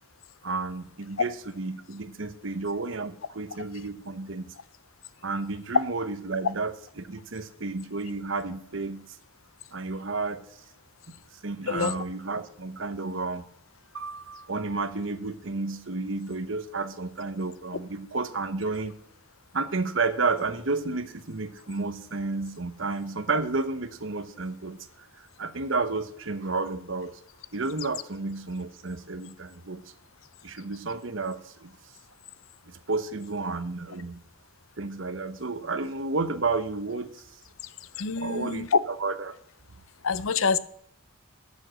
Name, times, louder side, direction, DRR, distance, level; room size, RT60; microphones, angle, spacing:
voice 1, 0.4-4.5 5.2-9.2 9.7-10.5 11.1-11.2 11.4-13.4 13.9-18.9 19.5-27.2 27.5-29.8 30.4-31.7 32.7-34.2 34.8-37.2 38.2-39.3, right 3 dB, 60° right, 11 dB, 1.0 m, -31 dB
voice 2, 38.0-38.7 40.0-40.6, left 5 dB, 65° left, 17 dB, 0.6 m, -27 dB
12.5 x 7.3 x 6.4 m, 0.68 s
head